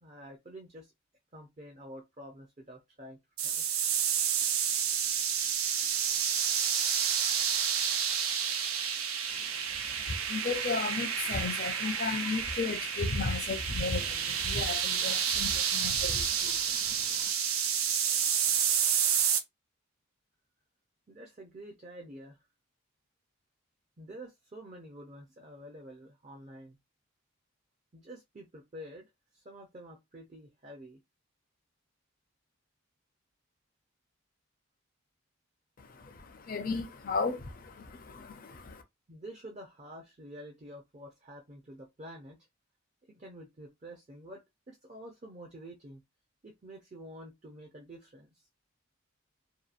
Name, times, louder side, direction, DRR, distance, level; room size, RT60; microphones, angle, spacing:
voice 1, 0.0-0.9 1.3-3.2 3.4-3.6 21.1-22.4 24.0-26.8 27.9-29.1 29.3-31.0 39.1-42.4 43.1-46.0 46.4-48.3, right 1 dB, 35° right, 0.5 m, -48 dB
sound 1, 3.4-19.4, right 8 dB, 85° right, 0.5 m, -30 dB
voice 2, 9.3-17.3 35.8-38.8, left 4 dB, 40° left, 0.5 m, -35 dB
2.8 x 2.3 x 2.4 m
head